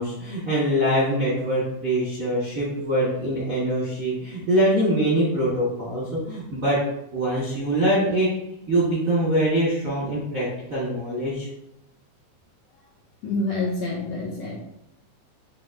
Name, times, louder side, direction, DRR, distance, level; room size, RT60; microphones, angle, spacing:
voice 1, 0.0-6.8 7.1-8.3 8.7-11.5, right 1 dB, 60° right, -8 dB, 0.8 m, -23 dB
voice 2, 13.2-14.6, left 2 dB, 85° left, -2 dB, 1.4 m, -27 dB
6.9 x 2.8 x 2.5 m, 0.83 s
omnidirectional pair, 3.4 m